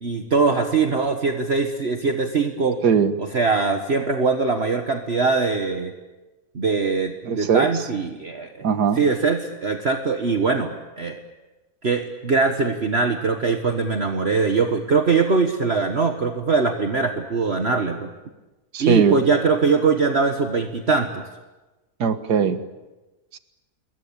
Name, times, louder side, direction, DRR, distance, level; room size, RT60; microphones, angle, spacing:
voice 1, 0.0-2.8 3.2-5.9 6.5-8.7 8.9-11.2 11.8-18.1 18.8-21.2, right 4 dB, 40° right, 5 dB, 1.6 m, -22 dB
voice 2, 7.2-7.7 8.6-9.0 18.7-19.2 22.0-22.6 23.3-23.4, right 7 dB, 80° right, 10 dB, 2.0 m, -19 dB
27.5 x 22.0 x 8.8 m, 1.1 s
omnidirectional pair, 1.7 m